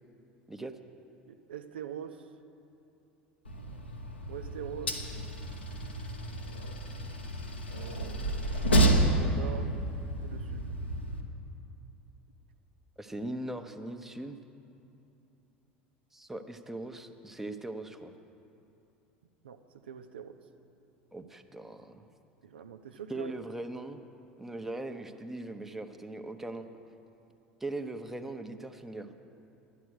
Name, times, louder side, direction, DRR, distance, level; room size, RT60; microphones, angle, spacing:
voice 1, 1.3-2.2 4.3-5.0 7.7-9.7 10.2-10.7 19.4-20.4 22.4-23.3, right 9 dB, 75° right, 8 dB, 0.7 m, -44 dB
Train, 3.5-11.2, right 1 dB, 80° left, 1.1 m, -30 dB
voice 2, 13.0-14.4 16.1-18.1 21.1-22.0 23.1-24.0 24.4-26.7 27.6-29.1, right 2 dB, 5° right, 6 dB, 0.9 m, -40 dB
12.5 x 10.5 x 6.4 m, 2.9 s
figure-of-eight pair, 70°, 6 cm